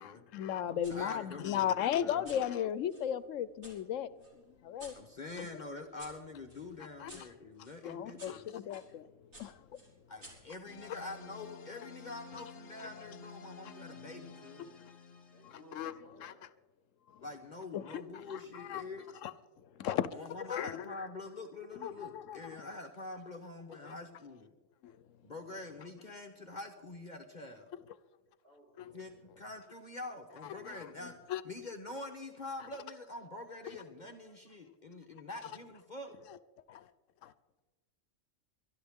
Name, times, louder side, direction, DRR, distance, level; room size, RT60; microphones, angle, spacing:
voice 1, 0.0-4.9 5.4-5.5 7.0-7.3 7.8-9.1 9.4-9.6 15.8-15.9 16.2-16.3 17.1-17.2 17.7-18.0 18.3-18.8 19.2-19.3 19.8-20.1 20.4-20.8 21.7-22.6 23.8-23.9 24.8-24.9 28.8-28.9 30.6-30.9 31.3-31.4 36.7-36.9 37.2-37.3, left 10 dB, 85° left, 1.0 m, -36 dB
voice 2, 0.7-2.3 5.0-8.6 10.1-14.7 17.2-19.1 20.1-24.5 25.2-27.7 28.9-31.2 31.4-36.1, left 2 dB, 40° left, 1.0 m, -45 dB
sound 1, 0.8-1.0 1.5-3.8 4.2-8.9 9.3-11.2, right 1 dB, 65° right, 4.5 m, -56 dB
sound 2, 10.6-15.8, left 5 dB, 65° left, 1.2 m, -51 dB
voice 3, 15.2-16.5 20.3-20.6 21.1-21.2 28.4-29.1, equal, 45° right, 5.8 m, -60 dB
23.5 x 11.5 x 3.6 m
omnidirectional pair, 1.3 m